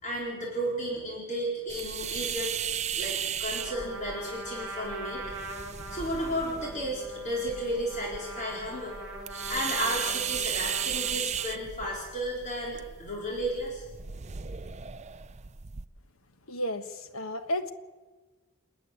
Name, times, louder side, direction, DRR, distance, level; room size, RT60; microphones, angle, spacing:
voice 1, 0.0-2.5 3.0-5.2 5.9-9.0 9.5-13.8, equal, 35° left, -3 dB, 4.4 m, -33 dB
sound 1, 1.7-15.9, right 9 dB, 30° right, 0.6 m, -36 dB
Trumpet, 3.5-11.6, right 2 dB, 5° right, 7.3 m, -42 dB
voice 2, 16.5-17.7, equal, 75° left, 9 dB, 1.4 m, -32 dB
28.0 x 9.4 x 9.9 m, 1.3 s
head